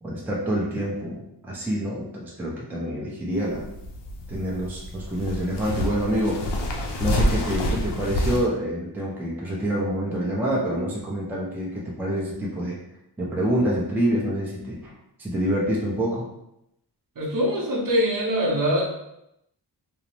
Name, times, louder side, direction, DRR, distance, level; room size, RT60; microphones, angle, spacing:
voice 1, 0.0-3.6 4.3-6.4 7.0-12.8 13.2-14.9 15.2-16.3, equal, 5° right, -4 dB, 0.5 m, -27 dB
sound 1, 3.3-8.4, left 1 dB, 85° left, 0.6 m, -28 dB
voice 2, 17.2-18.8, equal, 50° right, -3 dB, 0.8 m, -23 dB
2.5 x 2.0 x 3.0 m, 0.82 s
wide cardioid pair, 115°, 41 cm